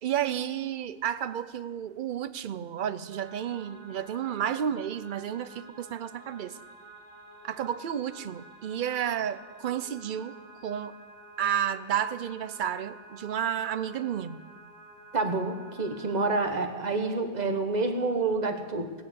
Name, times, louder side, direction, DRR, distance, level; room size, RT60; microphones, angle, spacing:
voice 1, 0.0-6.6 7.4-10.4 10.6-10.9 11.4-14.4, right 9 dB, 55° right, 15 dB, 0.6 m, -31 dB
sound 1, 3.1-16.4, right 1 dB, 70° right, 4.0 m, -50 dB
voice 2, 15.1-18.9, right 3 dB, 35° right, 6 dB, 1.3 m, -28 dB
18.5 x 9.6 x 6.9 m, 1.5 s
omnidirectional pair, 1.2 m